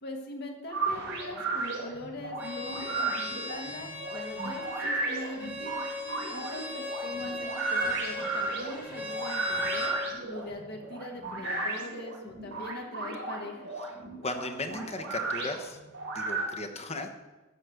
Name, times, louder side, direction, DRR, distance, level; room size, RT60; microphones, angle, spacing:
voice 1, 0.0-5.8 6.3-9.9 10.2-13.7, left 1 dB, 50° left, 3 dB, 1.6 m, -42 dB
sound 1, 0.7-16.4, right 3 dB, 60° right, 3.5 m, -34 dB
Bowed string instrument, 2.4-10.0, left 2 dB, 10° right, 3.5 m, -38 dB
voice 2, 14.2-15.8 16.1-17.1, left 2 dB, 30° left, 5 dB, 1.1 m, -36 dB
13.5 x 5.3 x 7.8 m, 1.1 s
head